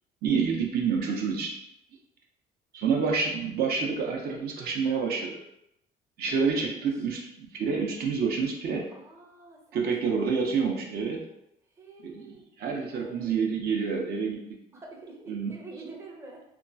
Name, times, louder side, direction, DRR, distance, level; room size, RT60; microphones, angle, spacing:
voice 1, 0.2-1.5 2.7-5.4 6.2-8.9 9.7-11.2 12.0-14.4 15.3-15.5, right 5 dB, 65° right, 0 dB, 0.6 m, -28 dB
voice 2, 6.3-6.9 8.9-9.9 10.2-10.9 11.8-12.5 12.9-13.5 14.7-16.4, right 3 dB, 15° right, -1 dB, 0.5 m, -47 dB
2.9 x 2.3 x 2.5 m, 0.82 s
cardioid pair, 110°, 17 cm